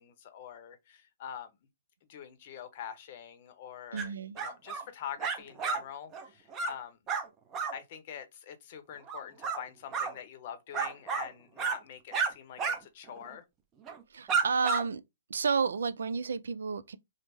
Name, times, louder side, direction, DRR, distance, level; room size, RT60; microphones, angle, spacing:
voice 1, 0.0-1.5 2.1-7.0 7.7-13.4, left 9 dB, 45° left, 0.7 m, -45 dB
voice 2, 3.9-4.4 14.1-15.0 15.3-17.0, right 5 dB, 80° right, 0.4 m, -31 dB
Small Dog Barking, 4.0-4.1 4.4-4.8 5.2-5.8 6.1-6.3 6.5-6.7 7.1-7.3 7.5-7.7 9.1-9.6 9.9-10.1 10.7-11.3 11.6-11.8 12.1-12.3 12.6-12.8 13.1-13.2 13.9-14.0 14.3-14.8, right 5 dB, 20° right, 0.6 m, -31 dB
3.1 x 2.0 x 3.3 m
hypercardioid pair, 150°, 0 cm